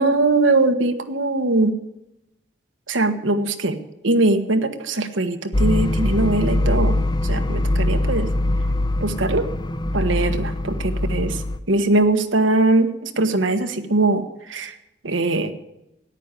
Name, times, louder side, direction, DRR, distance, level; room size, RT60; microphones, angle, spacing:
voice 1, 0.0-1.8 2.9-3.8 4.0-7.0 7.2-8.3 9.0-9.5 9.9-11.4 11.7-14.7 15.0-15.5, right 2 dB, 85° right, 7 dB, 1.4 m, -21 dB
sound 1, 5.5-11.6, left 1 dB, 20° left, 0.6 m, -22 dB
14.0 x 10.5 x 8.3 m, 0.88 s
head